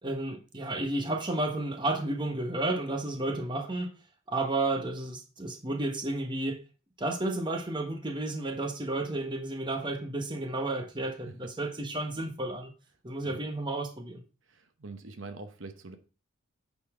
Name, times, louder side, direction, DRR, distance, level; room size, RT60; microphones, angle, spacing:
voice 1, 0.0-3.9 4.3-6.6 7.0-12.7 13.0-14.2, right 2 dB, 25° right, 1.2 m, -32 dB
voice 2, 14.5-16.0, right 3 dB, 65° right, 1.0 m, -44 dB
8.7 x 4.3 x 4.9 m
head